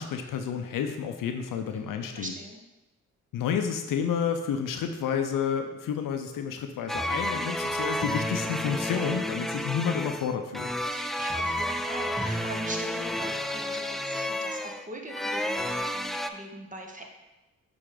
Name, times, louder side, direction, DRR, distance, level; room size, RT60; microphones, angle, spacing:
voice 1, 0.0-2.3 3.3-10.7, left 7 dB, 70° left, 6 dB, 0.7 m, -30 dB
voice 2, 1.7-2.6 10.9-17.1, right 1 dB, 25° right, 1 dB, 1.3 m, -41 dB
sound 1, 6.9-16.3, equal, ahead, 0.4 m, -31 dB
6.7 x 3.9 x 3.8 m, 1.0 s
hypercardioid pair, 45°, 34 cm